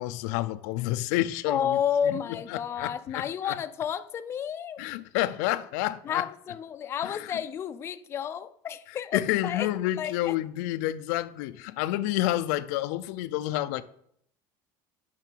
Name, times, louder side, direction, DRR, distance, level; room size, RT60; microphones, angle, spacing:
voice 1, 0.0-1.8 2.0-2.2 2.5-3.6 4.8-6.3 7.0-7.4 9.1-13.8, left 15 dB, 85° left, 0.5 m, -29 dB
voice 2, 1.5-4.8 6.0-9.7 10.0-10.3, left 8 dB, 30° left, 0.4 m, -31 dB
8.5 x 5.9 x 4.6 m
cardioid pair, 145°, 9 cm